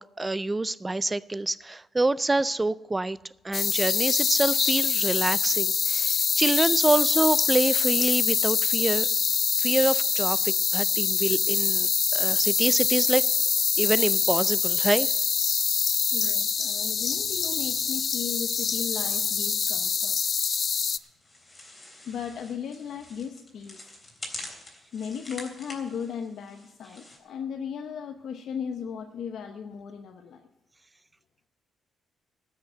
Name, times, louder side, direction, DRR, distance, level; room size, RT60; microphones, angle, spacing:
voice 1, 0.0-3.2 3.4-9.1 9.6-13.2 13.8-15.1, right 2 dB, 20° right, 18 dB, 0.3 m, -26 dB
sound 1, 3.5-21.0, left 6 dB, 45° left, 0.4 m, -25 dB
voice 2, 16.1-20.2 22.1-23.8 24.9-30.5, left 7 dB, 70° left, 5 dB, 0.8 m, -36 dB
sound 2, 20.8-27.2, left 1 dB, 20° left, 3.4 m, -45 dB
13.0 x 6.6 x 9.0 m, 0.96 s
cardioid pair, 90°, 0 cm